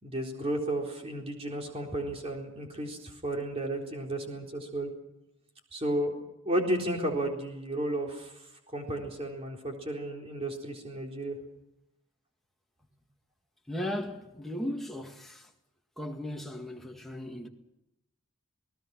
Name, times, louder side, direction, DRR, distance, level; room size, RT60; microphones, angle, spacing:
voice 1, 0.0-4.9 5.7-6.1 6.4-8.5 8.7-11.4, right 1 dB, 30° right, 4.0 m, -33 dB
voice 2, 13.7-15.5 16.0-17.5, left 1 dB, ahead, 2.0 m, -36 dB
28.5 x 18.5 x 6.2 m
head